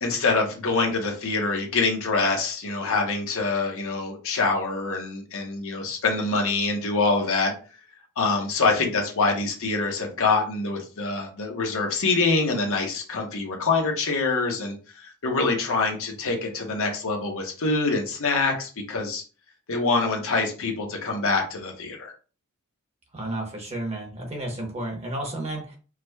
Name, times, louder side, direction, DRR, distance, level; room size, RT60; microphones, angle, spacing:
voice 1, 0.0-7.5 8.2-19.2 19.7-22.1, left 3 dB, 65° left, 1 dB, 0.9 m, -25 dB
voice 2, 23.1-25.8, right 1 dB, 30° right, 1 dB, 0.9 m, -32 dB
4.6 x 2.2 x 2.2 m, 0.35 s
head